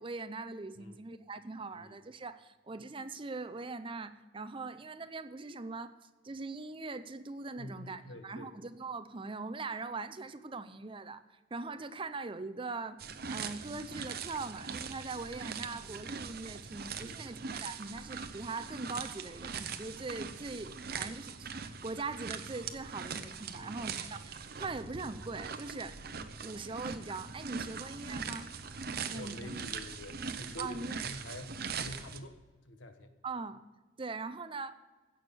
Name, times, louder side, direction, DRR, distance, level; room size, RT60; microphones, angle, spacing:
voice 1, 0.0-5.9 6.2-13.0 13.3-26.0 26.4-28.5 29.1-29.5 30.6-30.9 33.2-33.6 34.0-34.8, right 3 dB, 25° right, 12 dB, 0.5 m, -41 dB
voice 2, 7.6-8.5 17.0-17.4 23.5-23.8 27.8-27.9 29.1-32.4 32.6-33.1, left 1 dB, 80° left, 7 dB, 1.3 m, -47 dB
sound 1, 13.0-32.2, right 5 dB, 55° right, 0.8 m, -41 dB
16.0 x 6.3 x 7.0 m, 1.2 s
head